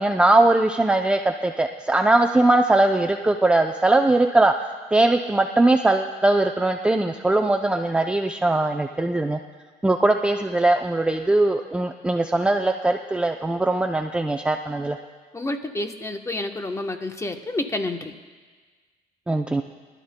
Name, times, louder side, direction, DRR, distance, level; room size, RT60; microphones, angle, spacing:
voice 1, 0.0-4.5 4.9-9.4 9.8-15.0 19.3-19.6, right 2 dB, 5° right, 4 dB, 0.5 m, -20 dB
voice 2, 15.3-18.1, left 2 dB, 15° left, 6 dB, 0.9 m, -29 dB
23.5 x 12.0 x 2.2 m, 1.4 s
cardioid pair, 110°, 17 cm